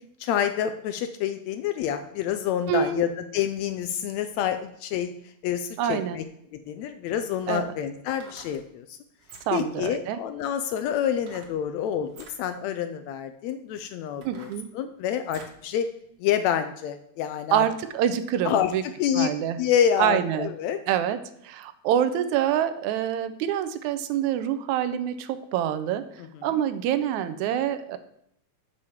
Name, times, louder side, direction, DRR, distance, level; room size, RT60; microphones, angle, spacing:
voice 1, 0.2-5.1 5.4-6.2 6.5-9.0 9.5-15.9 16.2-17.6 18.4-18.7 19.0-19.3 19.6-20.8, left 9 dB, 80° left, 9 dB, 1.6 m, -27 dB
voice 2, 2.7-3.0 5.8-6.2 7.5-7.7 9.5-10.2 14.3-14.7 17.5-18.8 19.1-19.6 20.0-20.5 20.9-21.2 21.4-26.1 26.4-28.0, right 10 dB, 80° right, 11 dB, 1.9 m, -26 dB
sound 1, 8.0-8.6 9.2-9.7 11.2-11.6 12.0-12.4 13.1-13.2 13.7-15.6 16.1-16.2, right 4 dB, 55° right, 2.0 m, -49 dB
6.4 x 5.4 x 6.9 m, 0.72 s
omnidirectional pair, 3.5 m